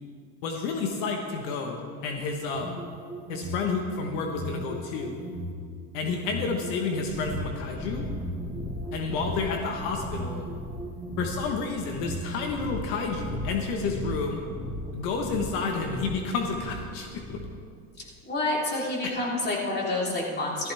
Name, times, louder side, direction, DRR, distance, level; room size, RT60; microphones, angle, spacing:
voice 1, 0.4-2.7 3.3-5.2 5.9-8.1 8.9-10.4 11.2-14.4 14.9-17.4 19.0-19.2, left 4 dB, 75° left, 2 dB, 1.2 m, -30 dB
sound 1, 2.5-3.7 4.2-5.5 6.1-7.4 8.0-9.4 10.0-11.4 11.9-12.5, right 1 dB, 10° right, 2.5 m, -37 dB
sound 2, 7.0-17.6, left 1 dB, 10° left, 1.6 m, -38 dB
voice 2, 18.2-20.7, left 2 dB, 25° left, -4 dB, 3.4 m, -28 dB
15.0 x 14.0 x 3.4 m, 2.3 s
supercardioid pair, 115°, 37 cm